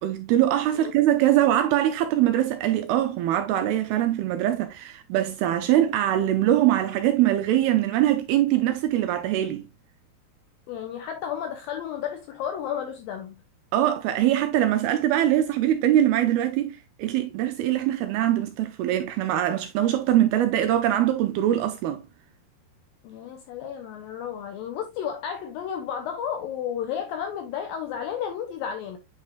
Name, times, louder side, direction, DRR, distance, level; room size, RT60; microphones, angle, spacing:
voice 1, 0.0-9.7 13.7-22.0, right 12 dB, 80° right, 2.2 m, -22 dB
voice 2, 10.7-13.4 23.0-29.0, left 8 dB, 85° left, 2.1 m, -32 dB
9.3 x 4.4 x 2.4 m
omnidirectional pair, 4.9 m